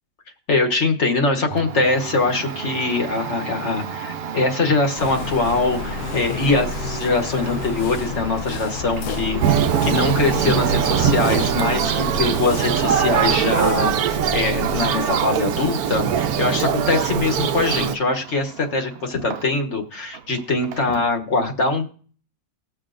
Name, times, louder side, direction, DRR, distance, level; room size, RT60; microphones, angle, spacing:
voice 1, 0.5-21.9, left 3 dB, 50° left, 3 dB, 1.5 m, -22 dB
Domestic sounds home sounds, 1.5-19.8 20.1-21.2, right 7 dB, 60° right, 0.7 m, -35 dB
sound 1, 5.0-14.9, left 5 dB, 80° left, 1.1 m, -31 dB
Thunder, 9.4-18.0, right 9 dB, 80° right, 1.2 m, -21 dB
20.0 x 7.0 x 2.5 m, 0.44 s
omnidirectional pair, 1.6 m